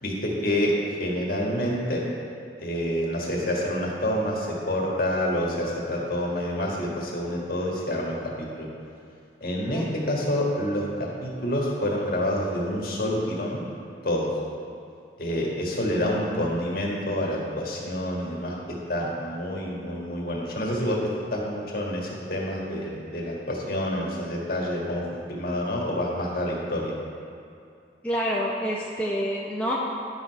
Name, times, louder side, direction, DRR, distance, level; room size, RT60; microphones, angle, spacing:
voice 1, 0.0-0.7 1.0-2.0 2.6-8.7 9.4-13.6 14.0-14.3 15.2-21.0 21.3-26.9, left 1 dB, 50° left, -3 dB, 1.7 m, -28 dB
voice 2, 28.0-29.8, equal, 5° left, -5 dB, 0.6 m, -27 dB
10.5 x 6.4 x 4.7 m, 2.5 s
head